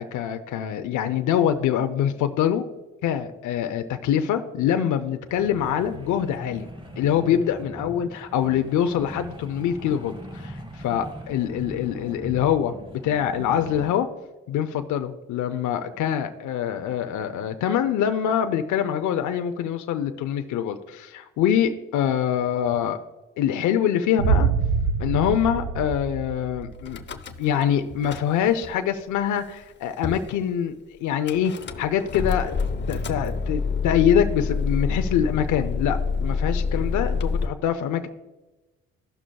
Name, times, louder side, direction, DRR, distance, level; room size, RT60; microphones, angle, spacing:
voice 1, 0.0-2.7 3.0-6.7 7.0-12.7 13.0-14.1 14.5-23.0 23.4-24.5 25.0-27.0 27.4-30.7 31.0-31.5 31.8-32.5 32.9-38.1, left 9 dB, 80° left, 7 dB, 0.7 m, -24 dB
sound 1, 5.3-13.9, equal, 15° right, 1.5 m, -40 dB
Boom, 24.2-27.1, right 5 dB, 80° right, 0.7 m, -25 dB
Car / Engine starting / Idling, 26.9-27.6 27.9-28.7 29.4-29.5 29.6-29.7 30.0-30.3 31.3-37.4, left 4 dB, 35° left, 0.7 m, -27 dB
16.0 x 6.2 x 2.3 m, 1.1 s
cardioid pair, 90°, 30 cm